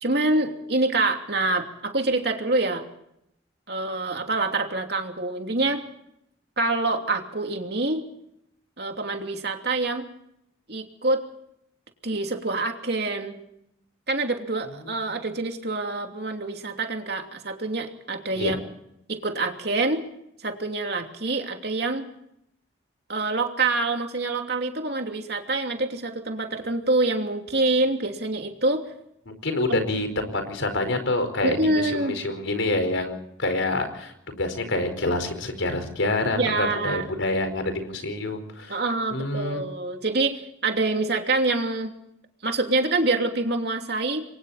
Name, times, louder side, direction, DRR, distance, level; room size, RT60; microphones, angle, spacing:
voice 1, 0.0-2.8 3.7-5.8 6.6-8.0 8.8-10.1 10.7-11.2 12.0-13.4 14.1-18.6 19.1-20.0 20.4-22.1 23.1-28.8 29.7-29.8 31.4-32.1 36.4-37.1 38.7-41.9 42.4-44.2, right 2 dB, 55° right, 3 dB, 3.0 m, -26 dB
voice 2, 29.3-38.8 39.1-39.6, left 2 dB, 85° left, 8 dB, 4.8 m, -27 dB
28.5 x 23.0 x 4.3 m, 0.77 s
head